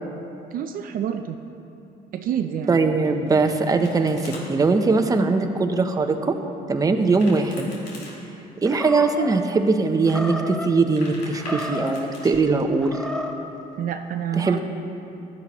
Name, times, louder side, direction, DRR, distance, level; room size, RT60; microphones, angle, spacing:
voice 1, 0.5-1.4 2.1-2.8 13.8-14.6, right 9 dB, 55° right, 6 dB, 0.6 m, -28 dB
voice 2, 2.7-6.4 6.7-7.7 8.6-13.0 14.4-14.6, right 3 dB, 20° right, 5 dB, 0.8 m, -21 dB
Domestic sounds home sounds, 3.0-4.4 7.0-8.1 10.7-12.3, left 2 dB, 85° left, 3.0 m, -42 dB
Animal, 8.6-9.4 10.0-10.7 11.3-12.1 12.8-13.4, left 1 dB, 5° left, 0.9 m, -31 dB
16.0 x 11.5 x 3.1 m, 2.9 s
cardioid pair, 110°, 17 cm